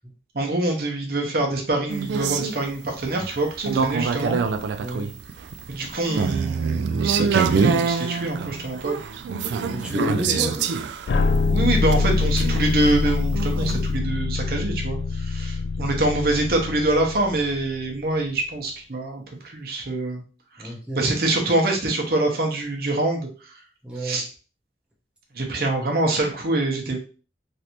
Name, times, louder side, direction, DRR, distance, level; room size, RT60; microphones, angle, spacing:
voice 1, 0.3-4.4 5.7-9.0 10.3-10.5 11.1-20.2 21.0-23.3 24.0-24.2 25.4-27.0, right 2 dB, 60° right, 1 dB, 0.8 m, -25 dB
sound 1, 1.9-13.8, right 5 dB, 80° right, 0.3 m, -25 dB
voice 2, 4.8-5.1 9.7-10.6 15.6-15.9 20.6-21.1 23.8-24.2, equal, 5° right, -3 dB, 0.6 m, -31 dB
sound 2, 11.1-18.0, left 4 dB, 70° left, 0.3 m, -24 dB
3.2 x 2.6 x 2.9 m, 0.36 s
head